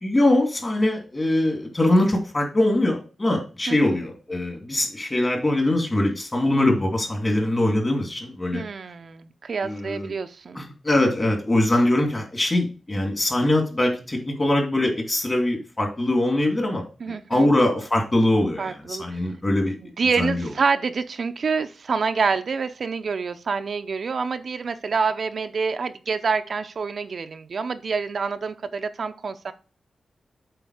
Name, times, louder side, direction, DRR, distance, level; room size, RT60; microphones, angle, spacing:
voice 1, 0.0-8.6 9.6-10.1 10.5-19.8 20.2-20.5, left 1 dB, 25° left, 2 dB, 2.5 m, -22 dB
voice 2, 8.5-10.6 17.0-17.5 18.6-19.3 20.0-29.5, right 5 dB, 55° right, 9 dB, 0.5 m, -27 dB
7.9 x 4.6 x 4.8 m, 0.34 s
wide cardioid pair, 130°, 0 cm